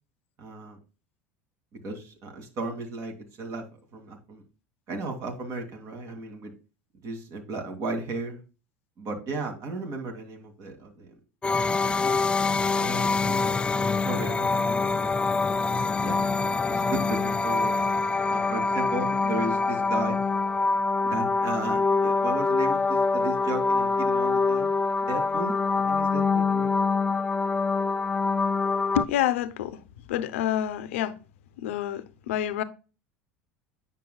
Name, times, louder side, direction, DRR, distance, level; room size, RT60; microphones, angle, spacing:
voice 1, 0.4-0.8 1.7-3.7 3.9-4.4 4.9-6.5 7.0-8.4 9.0-11.2 11.8-12.3 12.7-16.2 16.6-17.8 18.3-20.2 21.0-24.7 25.0-25.5 25.8-26.7, right 3 dB, 50° right, 2.5 m, -35 dB
sound 1, 11.4-29.0, left 4 dB, 15° left, 0.3 m, -25 dB
voice 2, 28.9-29.8 30.1-31.2 31.6-32.6, left 11 dB, 80° left, 0.7 m, -28 dB
9.1 x 6.0 x 2.3 m
hypercardioid pair, 85°, 7 cm